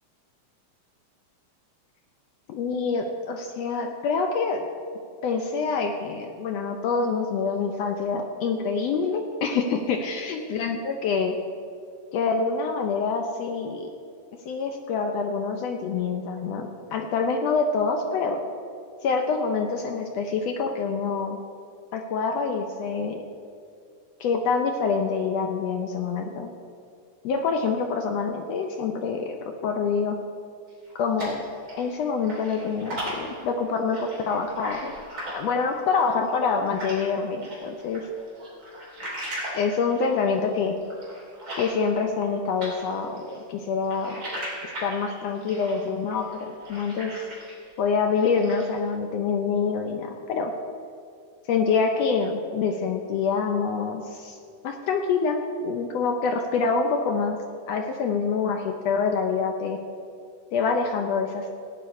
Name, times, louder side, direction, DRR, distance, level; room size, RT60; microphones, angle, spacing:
voice 1, 2.5-4.7 5.2-11.4 12.1-13.9 14.4-18.4 19.0-21.4 21.9-23.2 24.2-26.5 27.2-29.4 29.6-30.2 30.9-31.5 31.7-34.9 35.3-38.0 39.5-40.7 41.6-44.2 44.8-47.2 47.8-50.5 51.5-54.4 54.6-57.4 57.7-59.8 60.5-61.5, left 5 dB, 75° left, 4 dB, 1.5 m, -26 dB
sound 1, 30.7-32.0 32.2-37.1 37.4-42.3 42.6-47.7 48.0-48.8, right 1 dB, 30° right, 3.3 m, -38 dB
17.0 x 9.4 x 4.3 m, 2.4 s
omnidirectional pair, 3.5 m